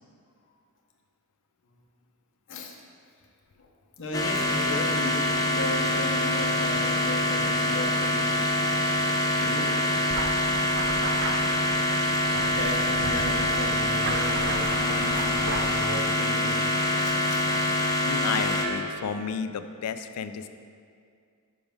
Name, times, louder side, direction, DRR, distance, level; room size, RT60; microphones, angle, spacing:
voice 1, 4.0-8.3 9.3-9.8 10.8-11.2 12.3-16.6 17.0-17.5, left 1 dB, 60° left, 1 dB, 0.9 m, -36 dB
sound 1, 4.1-18.6, left 1 dB, 15° left, 0.6 m, -25 dB
sound 2, 10.1-15.9, right 2 dB, 55° right, 0.6 m, -36 dB
voice 2, 18.0-20.5, left 6 dB, 80° left, 10 dB, 0.4 m, -32 dB
6.0 x 5.3 x 5.1 m, 2.2 s
head